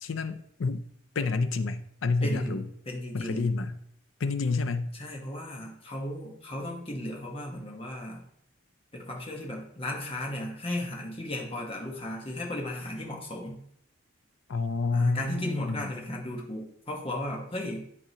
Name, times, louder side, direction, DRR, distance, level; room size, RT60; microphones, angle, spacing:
voice 1, 0.0-0.9 1.2-2.6 3.1-3.8 4.2-4.9 14.5-15.9, left 3 dB, 75° left, 0.5 m, -29 dB
voice 2, 2.2-2.6 2.9-3.5 4.9-8.2 8.9-13.6 14.9-17.9, left 1 dB, 25° left, 1.2 m, -35 dB
11.0 x 3.7 x 2.9 m
head